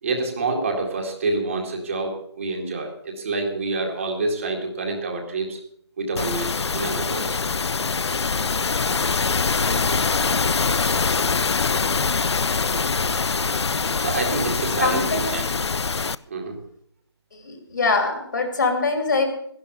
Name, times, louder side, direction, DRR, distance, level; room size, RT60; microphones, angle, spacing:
voice 1, 0.0-5.6 6.0-7.4 14.0-15.5 16.3-16.5, right 3 dB, 30° right, 2 dB, 2.1 m, -27 dB
sound 1, 6.2-16.2, left 4 dB, 75° left, 0.5 m, -23 dB
voice 2, 14.8-15.4 17.3-19.3, left 4 dB, 45° left, 5 dB, 2.8 m, -23 dB
12.5 x 11.5 x 6.7 m, 0.69 s
figure-of-eight pair, 165°, 14 cm